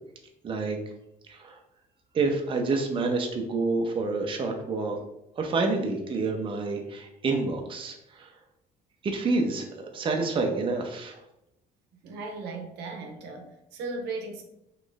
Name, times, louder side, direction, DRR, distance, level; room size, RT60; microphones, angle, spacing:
voice 1, 0.4-0.8 1.3-1.6 2.1-5.0 5.4-8.3 9.0-11.2, right 3 dB, 30° right, 2 dB, 0.6 m, -28 dB
voice 2, 12.0-14.4, right 3 dB, 85° right, 2 dB, 0.7 m, -37 dB
3.1 x 2.4 x 3.9 m, 0.84 s
cardioid pair, 110°, 17 cm